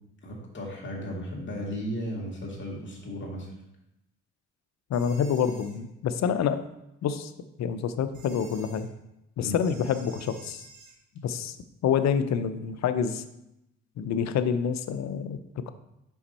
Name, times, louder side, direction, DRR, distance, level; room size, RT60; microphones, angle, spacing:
voice 1, 0.2-3.5 9.4-9.6, equal, 40° left, -3 dB, 2.3 m, -35 dB
voice 2, 4.9-6.6 7.0-7.3 7.6-8.9 9.4-10.6 11.2-11.6 11.8-13.2 14.0-15.7, left 7 dB, 65° left, 11 dB, 0.6 m, -27 dB
sound 1, 4.9-5.8 8.1-8.9 9.6-11.0, right 4 dB, 70° right, 1.5 m, -51 dB
5.8 x 5.3 x 4.2 m, 0.87 s
cardioid pair, 90°, 30 cm